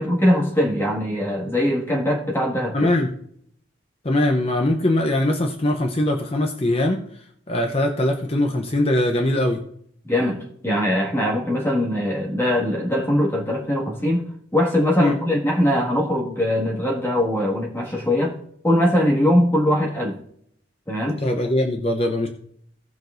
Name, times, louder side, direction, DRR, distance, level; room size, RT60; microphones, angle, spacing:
voice 1, 0.0-2.9 10.0-14.2 14.5-18.4 18.6-20.2 20.9-21.2, left 1 dB, 10° left, -2 dB, 1.9 m, -21 dB
voice 2, 2.7-3.1 4.0-9.6 15.0-15.1 21.2-22.3, left 1 dB, 30° left, 3 dB, 0.7 m, -21 dB
18.0 x 6.0 x 2.6 m, 0.66 s
head